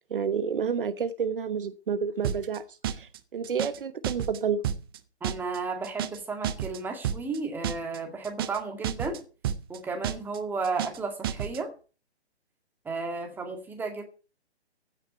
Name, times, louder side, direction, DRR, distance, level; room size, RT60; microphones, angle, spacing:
voice 1, 0.1-4.6, right 6 dB, 50° right, 1.1 m, -30 dB
sound 1, 2.2-2.6 2.8-3.2 3.4-3.8 4.0-4.4 4.6-5.0 5.2-5.6 5.8-6.2 6.4-6.8 7.0-7.4 7.6-8.0 8.2-8.6 8.8-9.2 9.4-9.8 10.0-10.4 10.6-11.0 11.2-11.6, right 10 dB, 20° right, 0.7 m, -31 dB
voice 2, 5.2-9.2 9.7-11.7 12.9-14.0, right 4 dB, 5° right, 1.9 m, -33 dB
15.5 x 6.6 x 7.9 m
figure-of-eight pair, 135°, 33 cm